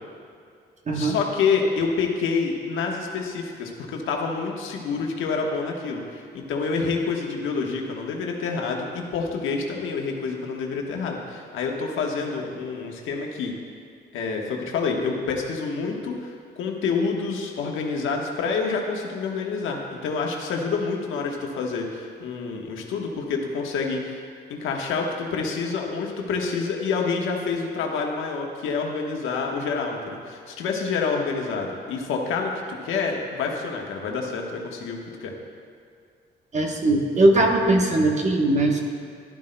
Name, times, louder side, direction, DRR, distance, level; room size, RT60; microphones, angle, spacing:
voice 1, 0.9-13.5 14.1-24.2 24.5-32.5 32.8-35.3, left 5 dB, 85° left, 1 dB, 1.2 m, -27 dB
voice 2, 36.5-38.8, right 2 dB, 35° right, 1 dB, 1.1 m, -20 dB
12.5 x 11.5 x 2.2 m, 2.3 s
cardioid pair, 90°, 20 cm